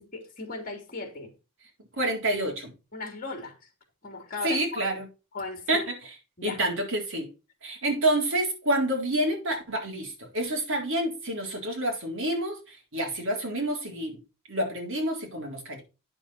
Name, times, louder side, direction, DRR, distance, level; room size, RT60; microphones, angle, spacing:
voice 1, 0.1-1.3 2.9-3.7 4.0-4.9 5.3-5.8 6.4-6.6, left 3 dB, 40° left, 3.0 m, -37 dB
voice 2, 2.0-2.7 4.4-5.1 5.7-6.0 6.4-7.3 7.6-14.2 14.5-15.8, right 1 dB, 60° right, 3.9 m, -28 dB
9.5 x 6.8 x 4.3 m
head